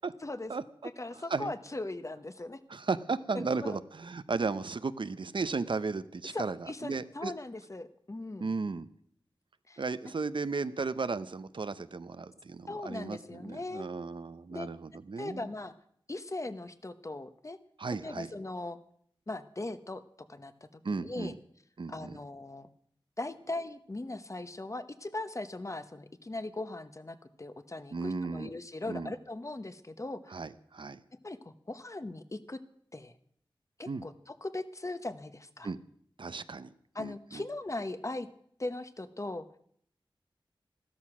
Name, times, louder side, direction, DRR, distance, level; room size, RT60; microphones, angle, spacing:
voice 1, 0.2-0.5 1.0-2.6 3.3-3.8 6.2-8.5 9.7-9.8 12.7-13.9 14.5-14.7 15.2-15.7 16.1-17.6 18.0-18.8 19.3-20.0 20.3-21.3 21.9-22.7 23.2-30.3 31.2-32.6 32.9-33.1 33.8-35.7 36.9-38.3 38.6-39.4, left 2 dB, 35° left, 11 dB, 1.0 m, -39 dB
voice 2, 2.7-7.3 8.4-8.9 9.8-15.4 17.8-18.3 20.8-21.3 21.8-22.2 27.9-28.5 28.9-29.1 30.3-31.0 33.9-34.1 35.6-35.8 36.2-36.7 37.0-37.4, right 4 dB, 65° right, 13 dB, 0.7 m, -35 dB
14.0 x 13.0 x 6.1 m, 0.65 s
wide cardioid pair, 65°, 9 cm